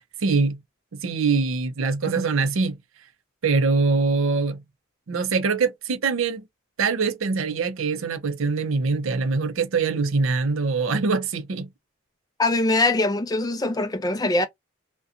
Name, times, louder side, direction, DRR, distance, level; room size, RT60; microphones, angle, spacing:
voice 1, 0.2-0.6 0.9-2.8 3.4-4.6 5.1-6.4 6.8-11.7, right 4 dB, 70° right, 0.5 m, -23 dB
voice 2, 12.4-14.5, left 2 dB, 20° left, 0.4 m, -22 dB
2.5 x 2.2 x 2.7 m
head